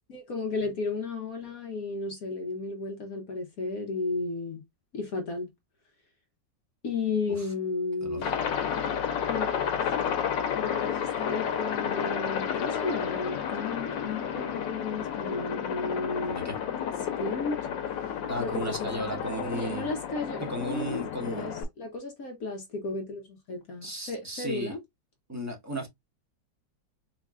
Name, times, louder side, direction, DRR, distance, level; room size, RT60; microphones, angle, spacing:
voice 1, 0.1-4.6 4.9-5.5 6.8-8.3 9.3-9.5 9.9-10.1 10.5-16.4 17.2-17.6 18.4-24.8, left 3 dB, 55° left, 1.2 m, -34 dB
Aircraft, 8.2-21.6, left 8 dB, 80° left, 1.5 m, -31 dB
voice 2, 16.2-16.6 18.3-19.9 20.5-21.5 23.8-24.7 25.3-25.9, right 1 dB, 10° right, 0.9 m, -34 dB
4.1 x 3.7 x 2.4 m
omnidirectional pair, 1.9 m